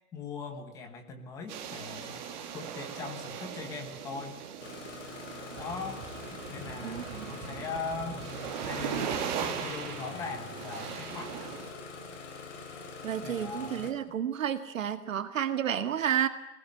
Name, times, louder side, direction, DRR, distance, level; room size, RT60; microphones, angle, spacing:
voice 1, 0.1-2.2 2.5-4.4 5.6-6.0 6.5-8.2 8.6-11.6 13.2-14.2, left 5 dB, 5° left, 6 dB, 1.2 m, -40 dB
sound 1, 1.5-11.7, right 8 dB, 30° right, 2.9 m, -39 dB
Engine starting, 4.6-13.9, left 6 dB, 50° left, 3.3 m, -45 dB
sound 2, 5.5-13.8, right 4 dB, 15° right, 3.9 m, -47 dB
voice 2, 6.8-7.3 13.0-16.3, right 9 dB, 55° right, 9 dB, 2.0 m, -31 dB
25.0 x 19.5 x 9.8 m, 0.94 s
hypercardioid pair, 180°, 46 cm